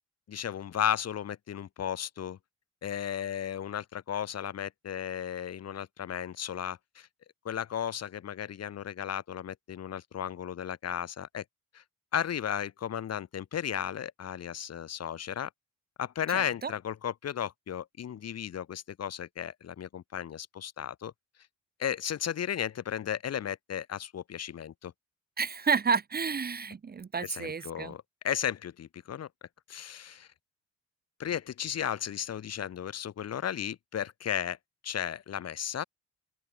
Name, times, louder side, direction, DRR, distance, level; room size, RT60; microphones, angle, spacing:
voice 1, 0.3-2.4 2.8-7.1 7.4-11.4 11.7-11.8 12.1-15.5 16.0-21.1 21.8-24.9 27.2-29.3 29.7-30.3 31.2-34.6 34.8-35.8, left 9 dB, 55° left, 2.1 m, -34 dB
voice 2, 16.3-16.7 25.4-27.9, right 5 dB, 30° right, 1.0 m, -30 dB
open air
cardioid pair, 90°, 30 cm